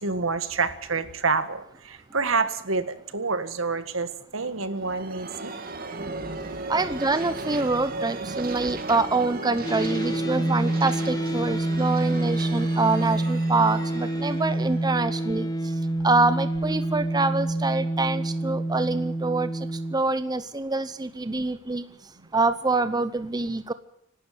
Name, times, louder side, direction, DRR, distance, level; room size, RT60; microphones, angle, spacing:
voice 1, 0.0-5.5, right 4 dB, 75° right, 11 dB, 1.8 m, -28 dB
sound 1, 4.4-15.9, right 3 dB, 45° right, 2.3 m, -36 dB
voice 2, 6.7-15.5 16.0-21.8 22.3-23.7, right 3 dB, 20° right, 12 dB, 0.7 m, -25 dB
sound 2, 9.6-19.9, right 1 dB, 20° left, 1.3 m, -27 dB
26.0 x 12.0 x 9.3 m, 0.70 s
head